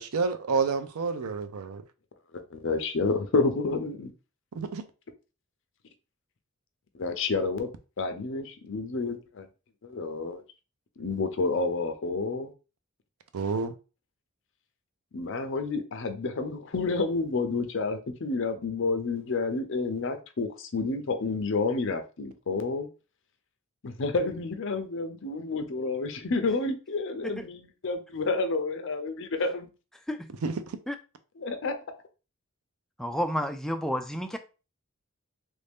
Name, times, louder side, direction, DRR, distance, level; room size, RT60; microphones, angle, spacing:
voice 1, 0.0-1.8 4.6-4.9 13.3-13.7 30.4-30.8, right 5 dB, 90° right, 0.5 m, -29 dB
voice 2, 2.3-4.1 6.9-7.7 8.0-9.5 9.8-10.4 11.0-12.5 15.1-22.9 23.8-29.7 31.4-31.7, left 3 dB, 60° left, 0.6 m, -29 dB
voice 3, 33.0-34.4, equal, ahead, 0.3 m, -30 dB
3.2 x 2.6 x 3.5 m
head